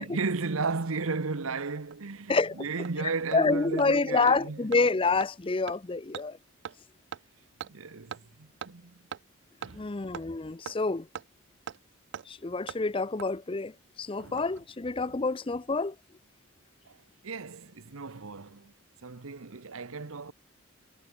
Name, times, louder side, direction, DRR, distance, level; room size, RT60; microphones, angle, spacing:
voice 1, 0.0-4.7 7.6-9.0 9.6-9.9 14.2-14.5 15.0-15.2 16.9-17.0 17.2-18.7 19.0-20.3, right 4 dB, 70° right, 0.9 m, -35 dB
Hammer, 1.4-1.5 1.9-2.0 2.4-2.5 2.8-2.9 3.3-3.4 3.8-3.9 4.3-4.4 4.7-4.8 5.2-5.3 5.7-5.8 6.1-6.3 6.6-6.8 7.1-7.2 7.6-7.7 8.1-8.2 8.6-8.7 9.1-9.2 9.6-9.7 10.1-10.3 10.7-10.8 11.1-11.3 11.7-11.8 12.1-12.3 12.7-12.8 13.2-13.3 14.2-14.6 14.9-15.0, right 8 dB, 55° right, 0.3 m, -40 dB
voice 2, 2.3-2.7 3.3-6.4 9.7-11.1 12.3-13.7 14.0-15.9, left 3 dB, 25° left, 0.5 m, -27 dB
head